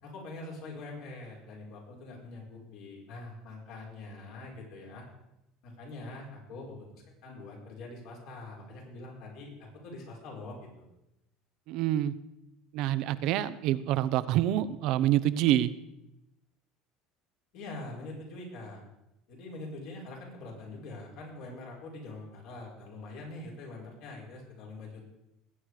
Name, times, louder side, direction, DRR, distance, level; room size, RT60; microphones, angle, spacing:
voice 1, 0.0-5.0 5.6-9.5 9.8-10.9 17.5-18.8 19.3-25.0, left 2 dB, 65° left, -1 dB, 5.2 m, -44 dB
voice 2, 11.7-12.1 12.7-15.7, right 13 dB, 65° right, 14 dB, 0.8 m, -27 dB
19.0 x 8.8 x 4.9 m, 0.89 s
supercardioid pair, 95°, 0 cm